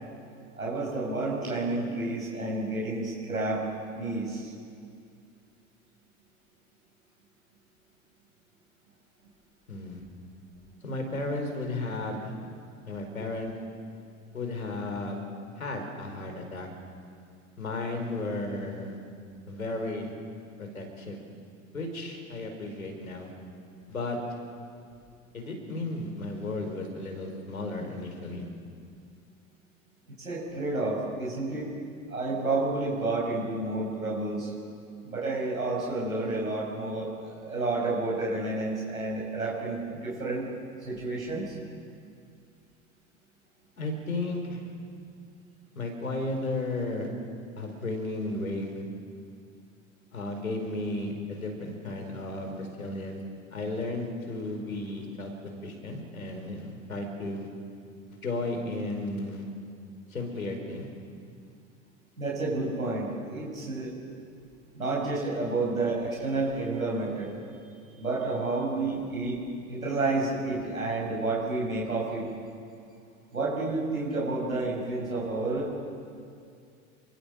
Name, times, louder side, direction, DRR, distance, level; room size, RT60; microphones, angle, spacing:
voice 1, 0.6-3.6 3.9-4.5 30.2-31.7 32.1-34.5 35.0-40.5 40.8-41.5 62.2-63.9 64.7-67.3 68.0-69.4 69.7-72.2 73.3-75.9, right 2 dB, 90° right, -4 dB, 6.2 m, -30 dB
voice 2, 9.7-10.0 10.8-12.3 12.9-13.5 14.3-15.2 15.6-16.7 17.6-19.0 19.5-20.1 20.6-21.2 21.7-23.3 23.9-24.2 25.3-28.5 43.8-44.6 45.7-47.1 47.6-48.8 50.1-53.2 53.5-55.3 55.6-57.5 58.1-59.5 60.1-60.9, left 2 dB, 85° left, 4 dB, 4.9 m, -34 dB
28.0 x 23.5 x 7.7 m, 2.3 s
figure-of-eight pair, 70°, 41 cm